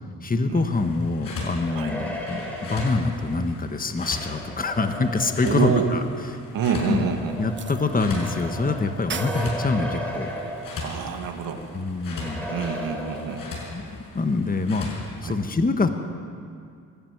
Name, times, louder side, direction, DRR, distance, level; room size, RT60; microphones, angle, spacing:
voice 1, 0.2-6.0 6.8-7.1 7.4-10.3 11.7-12.5 13.7-13.8 14.1-15.9, left 3 dB, 25° left, 7 dB, 1.5 m, -25 dB
sound 1, 0.5-15.2, left 3 dB, 75° left, 6.2 m, -39 dB
sound 2, 1.4-6.1 7.0-11.2 11.5-11.6 12.2-13.8, equal, 5° left, 5.9 m, -36 dB
voice 2, 5.4-5.9 6.5-7.3 10.8-11.6 12.5-13.4 15.2-15.4, right 6 dB, 80° right, 4 dB, 1.9 m, -26 dB
sound 3, 6.7-6.8 7.6-8.4 8.7-8.8 9.1-9.5, right 7 dB, 35° right, 0.7 m, -34 dB
23.0 x 12.5 x 9.5 m, 2.3 s
cardioid pair, 80°, 34 cm